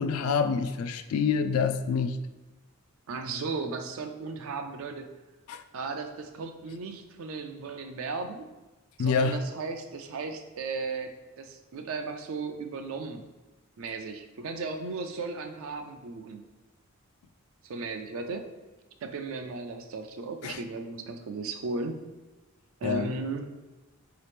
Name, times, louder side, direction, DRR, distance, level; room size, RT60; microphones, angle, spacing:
voice 1, 0.0-2.2 5.5-5.6 9.0-9.4 20.4-20.6 22.8-23.1, left 5 dB, 85° left, 10 dB, 0.3 m, -27 dB
voice 2, 3.1-5.1 5.7-8.5 9.0-13.2 13.8-16.5 17.6-18.5 19.0-22.0 22.8-23.5, right 4 dB, 70° right, 6 dB, 0.4 m, -36 dB
4.0 x 2.8 x 3.3 m, 1.1 s
head